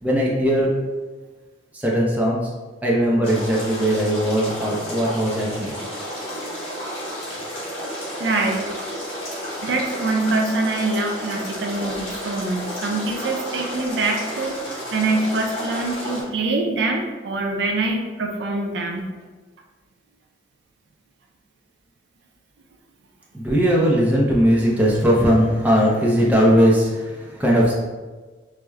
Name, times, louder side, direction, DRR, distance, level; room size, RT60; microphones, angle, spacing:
voice 1, 0.0-0.7 1.7-2.5 2.8-5.7 23.3-27.7, equal, 10° right, -4 dB, 0.4 m, -19 dB
sound 1, 3.2-16.2, equal, 80° left, 1.4 m, -32 dB
voice 2, 8.2-8.7 9.6-19.0, right 2 dB, 70° right, 2 dB, 0.4 m, -24 dB
4.7 x 2.1 x 2.2 m, 1.3 s
head